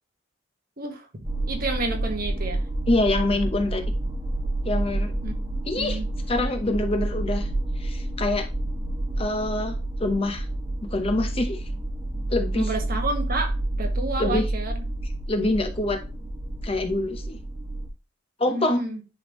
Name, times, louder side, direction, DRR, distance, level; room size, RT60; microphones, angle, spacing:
voice 1, 0.8-1.1 1.5-2.6 5.2-5.3 5.7-6.1 12.5-14.7 18.5-19.0, right 2 dB, 45° right, 1.5 m, -30 dB
sound 1, 1.2-17.9, right 1 dB, 20° right, 1.6 m, -29 dB
voice 2, 2.9-3.8 4.6-5.1 5.7-6.0 6.3-7.5 7.8-8.5 9.2-10.4 10.9-11.6 12.3-12.7 14.2-14.4 15.3-16.0 16.6-17.4 18.4-18.8, left 2 dB, 30° left, 0.9 m, -25 dB
10.0 x 3.6 x 3.0 m
head